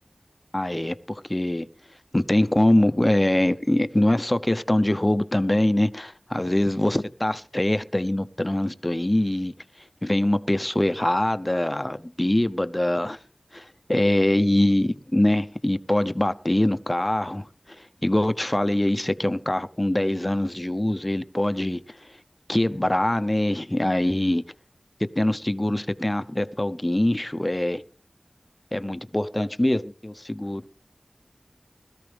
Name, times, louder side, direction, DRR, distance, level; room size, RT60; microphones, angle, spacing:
voice 1, 0.5-1.7 2.1-9.5 10.0-13.2 13.5-22.0 22.5-24.4 25.0-27.8 28.7-30.6, left 1 dB, 25° left, 0.9 m, -23 dB
20.5 x 14.0 x 3.5 m
wide cardioid pair, 45°, 0 cm